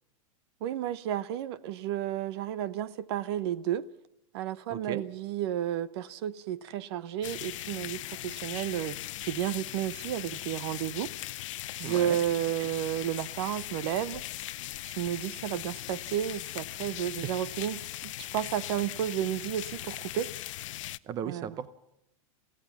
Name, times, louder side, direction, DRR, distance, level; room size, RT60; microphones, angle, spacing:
voice 1, 0.6-3.9 4.3-11.1 11.8-14.2 14.8-20.3 21.3-21.5, right 11 dB, 50° right, 0.9 m, -32 dB
voice 2, 4.7-5.0 11.8-12.2 12.6-12.7 17.2-17.3 21.0-21.7, right 9 dB, 20° right, 0.8 m, -36 dB
sound 1, 7.2-21.0, left 15 dB, 65° left, 0.7 m, -39 dB
23.0 x 16.5 x 7.2 m
supercardioid pair, 160°, 17 cm